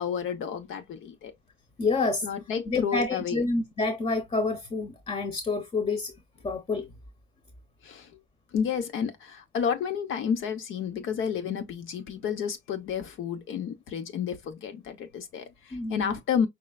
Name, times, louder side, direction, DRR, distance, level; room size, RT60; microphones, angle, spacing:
voice 1, 0.0-1.3 2.2-3.4 7.8-8.1 8.5-16.5, left 7 dB, 80° left, 1.0 m, -31 dB
voice 2, 1.8-2.3 2.7-6.1 6.4-6.9 15.7-16.2, left 3 dB, 30° left, 0.9 m, -28 dB
5.4 x 3.2 x 2.4 m
cardioid pair, 90°, 20 cm